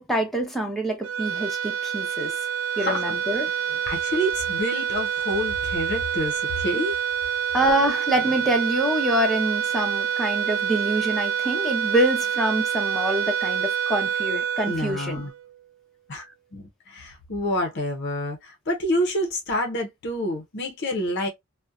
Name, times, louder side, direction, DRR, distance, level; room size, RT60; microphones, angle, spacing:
voice 1, 0.0-2.4 2.8-3.8 7.5-15.2, right 1 dB, ahead, 0.6 m, -25 dB
sound 1, 1.0-15.6, right 8 dB, 90° right, 0.4 m, -27 dB
voice 2, 2.7-3.1 3.9-7.0 14.7-15.3 16.1-16.3 16.5-21.3, left 1 dB, 55° left, 0.6 m, -28 dB
2.6 x 2.1 x 2.2 m
head